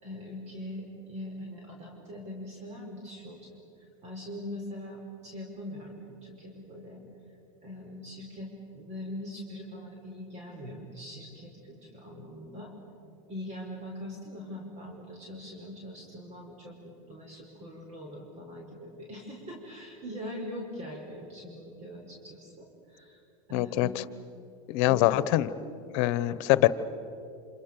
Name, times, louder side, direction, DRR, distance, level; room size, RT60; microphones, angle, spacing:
voice 1, 0.0-3.6 4.0-7.0 7.6-12.7 13.3-23.2 23.5-24.0, left 1 dB, 40° right, 0 dB, 5.3 m, -42 dB
voice 2, 23.5-23.9 24.7-25.5 25.9-26.7, left 16 dB, 60° left, 16 dB, 1.1 m, -23 dB
28.0 x 26.5 x 6.9 m, 2.8 s
supercardioid pair, 115°, 18 cm